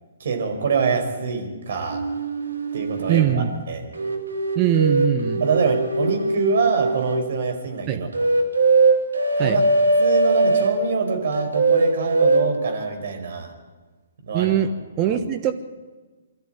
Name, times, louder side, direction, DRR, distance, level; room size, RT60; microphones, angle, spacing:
voice 1, 0.2-2.0 2.7-3.9 5.4-8.3 9.4-9.6 10.0-13.5 14.2-14.5 15.0-15.2, right 5 dB, 55° right, 4 dB, 4.9 m, -25 dB
sound 1, 1.9-3.3 4.0-7.3 8.1-10.8 11.3-12.5, right 3 dB, 75° right, 3.0 m, -21 dB
voice 2, 3.1-3.5 4.5-5.4 7.9-8.0 9.4-9.6 14.3-14.7 15.0-15.5, right 11 dB, 25° right, 7 dB, 1.3 m, -21 dB
23.5 x 13.5 x 9.2 m, 1.3 s
figure-of-eight pair, 130°, 0 cm